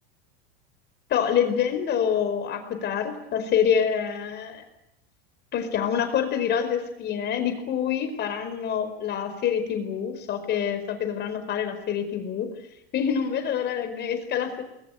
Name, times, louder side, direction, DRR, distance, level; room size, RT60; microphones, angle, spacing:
voice 1, 1.1-4.6 5.5-12.5 12.9-14.6, left 8 dB, 35° left, 8 dB, 5.1 m, -26 dB
28.5 x 21.5 x 9.4 m, 0.84 s
supercardioid pair, 140°, 30 cm